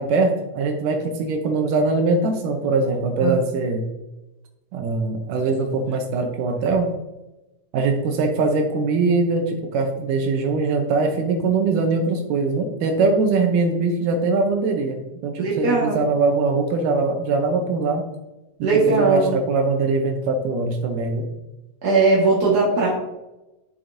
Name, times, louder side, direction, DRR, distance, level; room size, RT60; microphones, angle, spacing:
voice 1, 0.0-3.9 4.7-6.9 7.7-18.0 18.6-21.3, right 3 dB, 80° right, 4 dB, 2.3 m, -22 dB
voice 2, 15.4-16.0 18.6-19.3 21.8-22.9, right 3 dB, 45° right, -5 dB, 1.4 m, -19 dB
10.5 x 6.9 x 2.6 m, 0.99 s
omnidirectional pair, 3.7 m